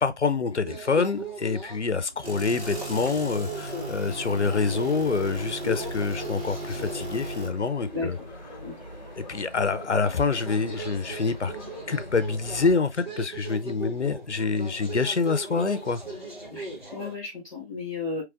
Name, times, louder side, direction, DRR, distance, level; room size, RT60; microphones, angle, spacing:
voice 1, 0.0-8.2 9.2-11.5 11.9-16.0, left 4 dB, 90° left, 0.7 m, -26 dB
sound 1, 0.6-17.1, right 1 dB, 45° right, 1.9 m, -40 dB
sound 2, 2.2-7.5, right 1 dB, 70° right, 1.7 m, -36 dB
sound 3, 2.6-12.7, equal, 40° left, 1.1 m, -43 dB
voice 2, 16.5-18.2, left 3 dB, 5° right, 2.8 m, -33 dB
4.7 x 3.2 x 2.5 m
figure-of-eight pair, 180°, 34 cm